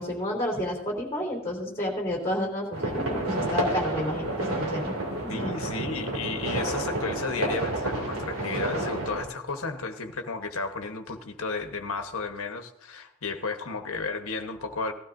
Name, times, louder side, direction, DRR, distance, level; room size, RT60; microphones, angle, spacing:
voice 1, 0.0-5.0 5.2-5.5, left 1 dB, 15° left, -3 dB, 3.2 m, -30 dB
sound 1, 2.7-9.2, right 1 dB, 75° right, 2.6 m, -30 dB
voice 2, 5.3-14.9, left 4 dB, 75° left, 6 dB, 1.1 m, -33 dB
17.5 x 13.0 x 2.6 m, 0.82 s
head